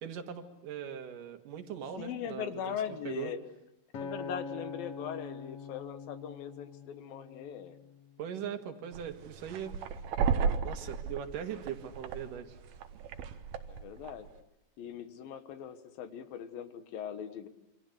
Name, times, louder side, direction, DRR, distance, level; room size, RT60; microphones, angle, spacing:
voice 1, 0.0-2.8 3.0-3.3 8.2-9.7 10.6-12.6, right 8 dB, 65° right, 7 dB, 3.3 m, -40 dB
voice 2, 2.0-3.4 4.0-7.8 13.7-14.3 14.8-17.5, left 9 dB, 75° left, 10 dB, 3.3 m, -40 dB
Acoustic guitar, 3.9-8.3 8.9-9.1, left 4 dB, 50° left, 2.2 m, -44 dB
sound 1, 8.9-14.3, right 6 dB, 90° right, 3.2 m, -34 dB
28.0 x 26.0 x 8.1 m, 0.85 s
omnidirectional pair, 4.2 m